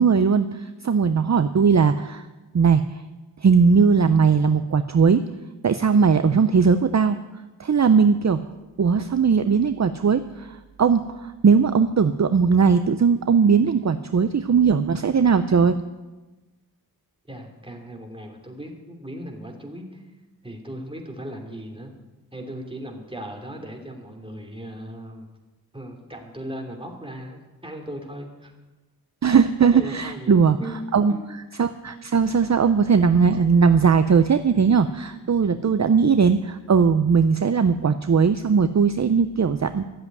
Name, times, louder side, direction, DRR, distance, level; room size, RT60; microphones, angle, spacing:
voice 1, 0.0-2.2 2.5-2.8 3.4-5.2 5.6-7.2 7.6-8.4 8.8-15.8 29.2-30.6 30.9-31.1 31.6-39.9, right 5 dB, 45° right, 10 dB, 0.6 m, -19 dB
voice 2, 17.3-20.0 20.4-21.9 22.3-25.3 25.7-28.5 29.7-30.8 31.1-31.4 34.5-34.8, right 1 dB, 15° right, 1 dB, 2.9 m, -37 dB
13.5 x 7.7 x 9.2 m, 1.1 s
wide cardioid pair, 60°, 37 cm